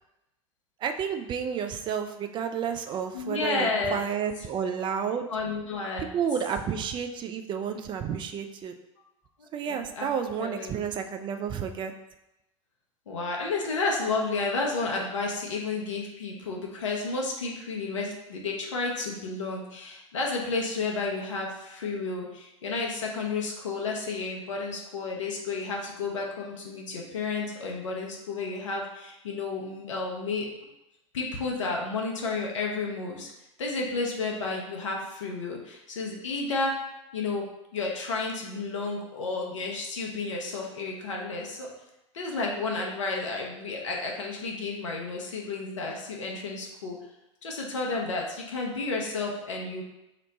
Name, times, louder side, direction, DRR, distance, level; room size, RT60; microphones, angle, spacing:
voice 1, 0.8-5.3 6.1-8.7 9.5-11.9, right 7 dB, 30° right, 6 dB, 0.4 m, -31 dB
voice 2, 3.1-4.0 5.3-6.1 9.4-10.1 10.4-10.8 13.1-30.5 31.1-33.3 33.6-36.8 37.1-37.5 37.7-41.7 42.1-47.0 47.4-49.8, left 3 dB, 75° left, -1 dB, 0.8 m, -31 dB
3.1 x 2.1 x 4.0 m, 0.91 s
figure-of-eight pair, 80°, 16 cm